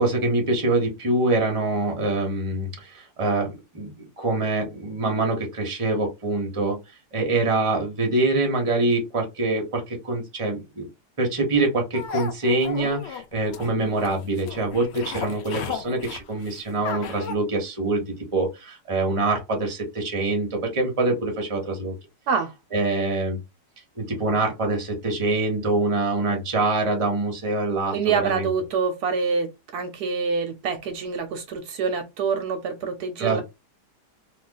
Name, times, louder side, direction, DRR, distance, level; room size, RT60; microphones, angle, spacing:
voice 1, 0.0-6.8 7.1-10.9 11.2-22.0 22.7-23.4 24.0-28.5 33.2-33.4, right 2 dB, 20° right, 1.0 m, -25 dB
sound 1, 11.9-17.3, left 7 dB, 80° left, 0.6 m, -35 dB
voice 2, 27.9-33.4, right 5 dB, 75° right, 1.1 m, -26 dB
2.9 x 2.4 x 3.8 m
omnidirectional pair, 1.8 m